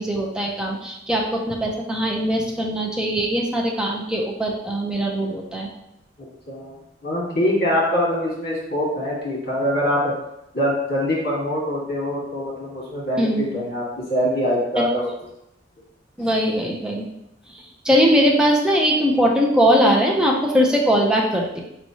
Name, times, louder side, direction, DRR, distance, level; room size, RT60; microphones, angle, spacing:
voice 1, 0.0-5.7 13.2-13.6 14.8-14.9 16.2-17.1 17.5-21.6, equal, 5° right, -1 dB, 0.5 m, -20 dB
voice 2, 6.2-6.7 7.0-10.1 10.5-15.1, equal, 55° left, -4 dB, 1.4 m, -24 dB
4.5 x 3.0 x 2.7 m, 0.83 s
head